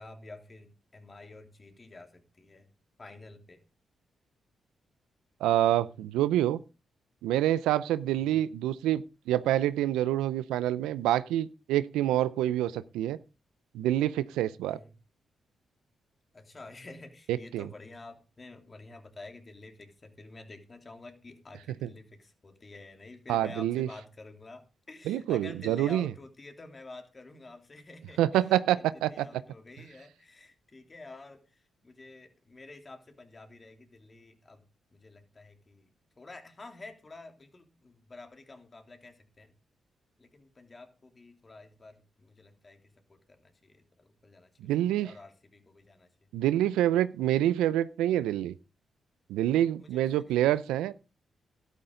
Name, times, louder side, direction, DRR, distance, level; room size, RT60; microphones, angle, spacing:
voice 1, 0.0-2.7 3.0-3.6 8.1-8.4 14.6-14.9 16.3-28.4 28.9-34.7 34.9-39.5 40.2-46.1 49.8-50.8, left 2 dB, 35° left, 3.1 m, -49 dB
voice 2, 5.4-6.6 7.2-13.2 13.7-14.8 17.3-17.7 21.8-21.9 23.3-23.9 25.1-26.1 28.2-29.2 44.6-45.1 46.3-48.5 49.3-50.9, right 13 dB, 85° right, 0.5 m, -27 dB
12.5 x 12.0 x 3.8 m
supercardioid pair, 50°, 0 cm